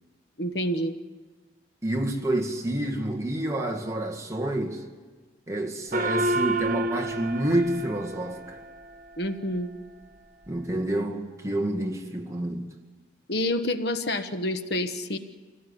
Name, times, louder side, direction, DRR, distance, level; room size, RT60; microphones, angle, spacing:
voice 1, 0.4-0.9 9.2-9.7 13.3-15.2, left 1 dB, 60° left, 1.2 m, -28 dB
voice 2, 1.8-4.8 5.5-8.6 10.5-12.7, right 1 dB, 15° right, 2.0 m, -28 dB
Gong, 5.9-8.8, right 2 dB, 45° right, 1.2 m, -29 dB
26.0 x 17.5 x 9.9 m
head